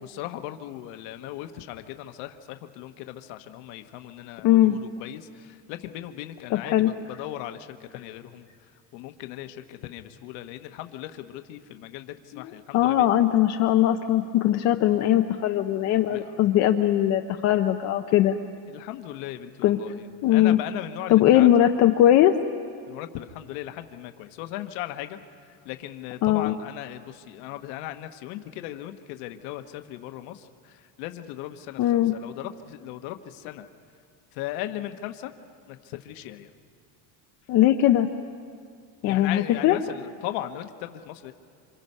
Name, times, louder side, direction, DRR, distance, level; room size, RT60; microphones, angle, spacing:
voice 1, 0.0-8.4 8.9-13.3 16.1-16.5 18.7-21.7 22.9-25.2 25.5-33.7 34.3-35.3 35.7-36.5 39.0-41.3, left 13 dB, 70° left, 7 dB, 1.1 m, -38 dB
voice 2, 4.4-4.8 6.5-6.9 12.3-12.4 12.7-18.4 19.6-19.8 20.2-20.6 21.1-22.4 26.2-26.5 31.8-32.1 37.5-38.1 39.0-39.8, left 12 dB, 40° left, 5 dB, 0.6 m, -20 dB
27.5 x 26.0 x 5.5 m, 2.2 s
cardioid pair, 170°, 42 cm